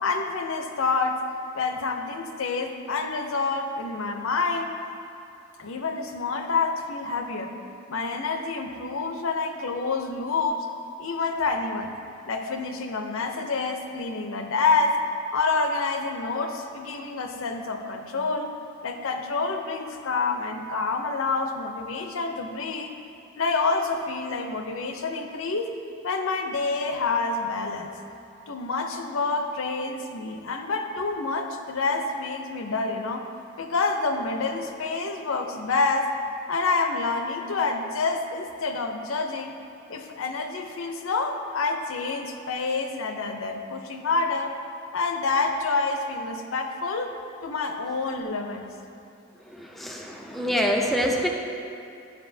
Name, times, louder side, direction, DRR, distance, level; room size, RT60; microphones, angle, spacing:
voice 1, 0.0-1.2 1.5-4.7 5.6-7.5 7.9-10.7 11.0-11.9 12.3-15.0 15.3-18.5 18.8-22.9 23.4-25.7 26.0-27.9 28.5-33.2 33.6-36.1 36.5-39.6 39.9-44.5 44.9-47.1 47.4-48.7, left 3 dB, 75° left, 5 dB, 0.6 m, -27 dB
voice 2, 49.4-51.3, equal, ahead, 0 dB, 0.5 m, -26 dB
12.5 x 5.2 x 2.7 m, 2.6 s
head